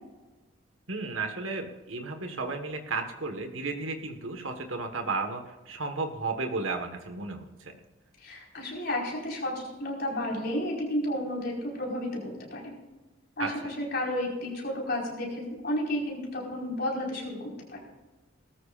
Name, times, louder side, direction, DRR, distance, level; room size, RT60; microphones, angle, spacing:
voice 1, 0.9-7.7 13.4-13.5, right 3 dB, 80° right, 5 dB, 1.6 m, -33 dB
voice 2, 8.2-12.8 13.4-17.8, left 1 dB, 50° left, -2 dB, 4.9 m, -32 dB
19.5 x 13.5 x 2.6 m, 1.2 s
head